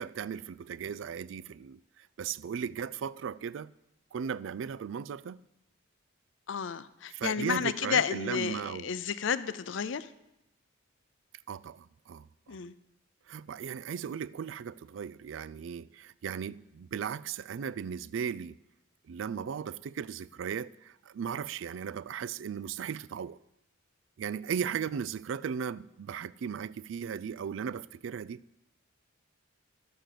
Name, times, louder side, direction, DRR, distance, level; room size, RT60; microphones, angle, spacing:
voice 1, 0.0-3.7 4.1-5.4 7.1-8.9 11.5-12.6 13.3-18.6 19.1-23.4 24.2-28.4, right 7 dB, 65° right, 0.3 m, -37 dB
voice 2, 6.5-10.1 12.5-12.7, left 6 dB, 60° left, 0.5 m, -31 dB
11.5 x 7.7 x 6.6 m
head